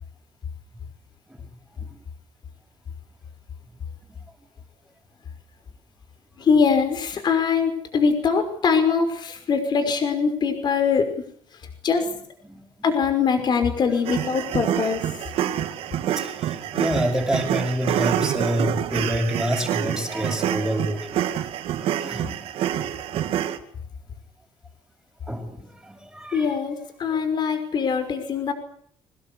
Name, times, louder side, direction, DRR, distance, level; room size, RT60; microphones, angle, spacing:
voice 1, 6.4-11.1 11.8-12.1 12.8-15.0 26.3-28.5, left 5 dB, 50° left, 8 dB, 5.6 m, -22 dB
sound 1, 14.1-23.6, right 11 dB, 85° right, 2.4 m, -27 dB
voice 2, 16.7-21.1 22.0-22.4 25.3-25.5 25.9-26.5, equal, 5° right, 2 dB, 7.4 m, -26 dB
24.5 x 19.5 x 8.4 m, 0.63 s
cardioid pair, 130°, 10 cm